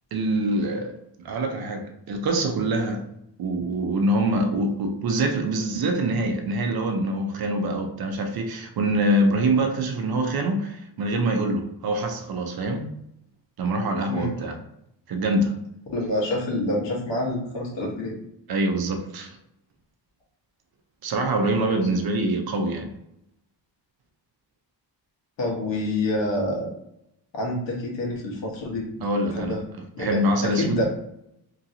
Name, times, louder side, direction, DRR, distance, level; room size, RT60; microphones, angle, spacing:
voice 1, 0.1-3.1 3.4-12.9 13.6-14.6 15.1-15.5 18.5-19.4 21.0-22.9 29.0-29.6 30.0-30.8, right 1 dB, 55° right, 0.6 m, -25 dB
voice 2, 15.9-18.2 25.4-26.7 27.3-28.9 29.2-29.6 29.9-30.8, left 1 dB, 75° left, 1.2 m, -27 dB
3.0 x 2.7 x 2.7 m
wide cardioid pair, 145°, 43 cm